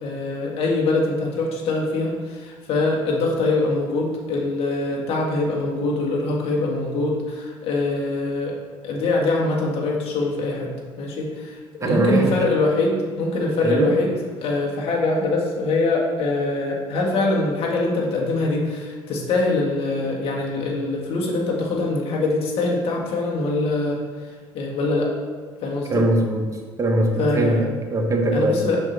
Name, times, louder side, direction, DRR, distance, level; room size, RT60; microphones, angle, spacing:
voice 1, 0.0-8.6 8.8-10.7 11.0-25.1 25.6-26.0 27.2-27.6 28.3-28.8, left 2 dB, 60° left, -2 dB, 1.6 m, -23 dB
voice 2, 11.8-12.3 13.6-14.0 25.9-26.5 26.8-28.6, right 2 dB, 30° right, 2 dB, 1.1 m, -21 dB
5.9 x 4.6 x 4.0 m, 1.5 s
supercardioid pair, 75°, 11 cm